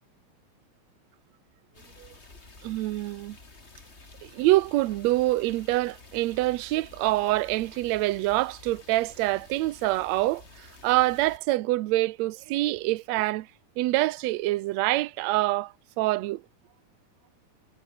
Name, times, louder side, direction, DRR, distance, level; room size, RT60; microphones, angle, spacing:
sound 1, 1.7-11.4, left 3 dB, 20° left, 2.7 m, -51 dB
voice 1, 2.6-3.4 4.2-13.5 13.8-16.4, right 18 dB, 70° right, 1.7 m, -26 dB
omnidirectional pair, 3.9 m